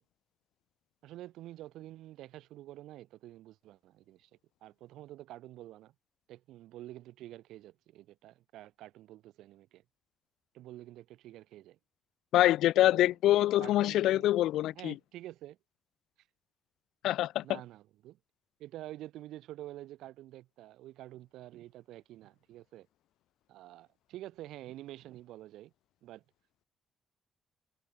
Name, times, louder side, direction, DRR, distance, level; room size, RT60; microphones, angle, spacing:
voice 1, 1.0-4.3 4.6-5.9 6.3-9.8 10.5-11.8 12.8-13.1 13.6-14.3 14.7-15.6 17.4-18.2 18.6-22.9 23.5-25.7 26.0-26.2, right 14 dB, 85° right, 4.2 m, -48 dB
voice 2, 12.3-14.9 17.0-17.4, left 14 dB, 85° left, 0.7 m, -25 dB
cardioid pair, 90°, 0 cm